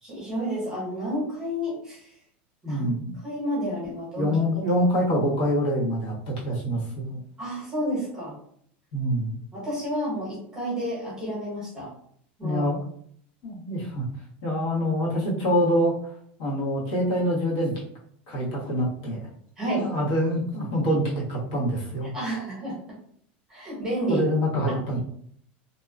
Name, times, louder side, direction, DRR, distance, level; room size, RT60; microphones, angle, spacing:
voice 1, 0.0-2.2 2.6-2.9 3.2-4.3 4.8-4.9 7.4-8.3 9.5-11.9 12.4-12.6 19.6-19.9 22.1-23.0 23.5-24.2 24.7-25.0, equal, 10° right, -7 dB, 1.0 m, -30 dB
voice 2, 2.6-3.1 4.1-7.2 8.9-9.3 12.4-12.8 13.4-14.0 14.4-16.1 16.4-17.7 18.3-19.2 19.8-22.1 24.1-25.0, equal, 65° left, -5 dB, 1.2 m, -25 dB
2.7 x 2.2 x 2.4 m, 0.64 s
supercardioid pair, 170°, 6 cm